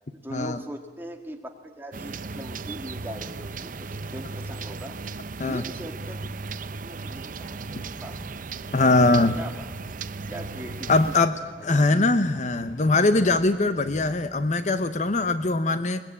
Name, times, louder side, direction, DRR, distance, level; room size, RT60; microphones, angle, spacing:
voice 1, 0.1-5.0 5.4-6.2 6.8-8.2 9.3-9.7 10.3-11.3 11.7-11.8, equal, 10° right, 3 dB, 1.8 m, -40 dB
sound 1, 1.9-11.2, right 4 dB, 45° right, 0.7 m, -36 dB
sound 2, 6.9-15.5, equal, 75° left, 3.6 m, -49 dB
voice 2, 8.7-9.4 10.9-11.4 11.6-16.0, left 2 dB, 40° left, 11 dB, 0.8 m, -21 dB
22.0 x 20.5 x 8.6 m, 1.3 s
head